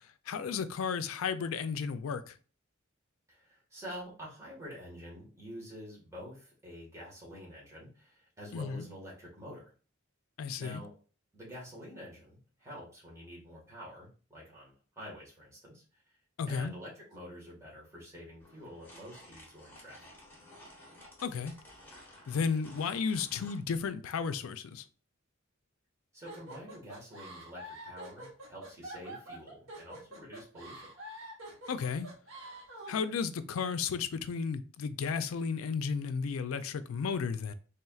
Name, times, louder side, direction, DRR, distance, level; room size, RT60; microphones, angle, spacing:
voice 1, 0.3-2.3 8.5-8.9 10.4-10.8 16.4-16.7 21.2-21.5 22.3-24.8 31.7-32.1 32.9-37.5, left 5 dB, 75° left, 0.4 m, -33 dB
voice 2, 3.3-9.6 10.5-10.9 11.3-16.1 16.5-20.0 26.1-30.9, equal, 15° right, 1.5 m, -48 dB
sound 1, 18.4-23.6, left 1 dB, 10° left, 1.2 m, -54 dB
sound 2, 26.3-33.1, right 1 dB, 65° right, 1.1 m, -46 dB
4.3 x 3.3 x 2.3 m
head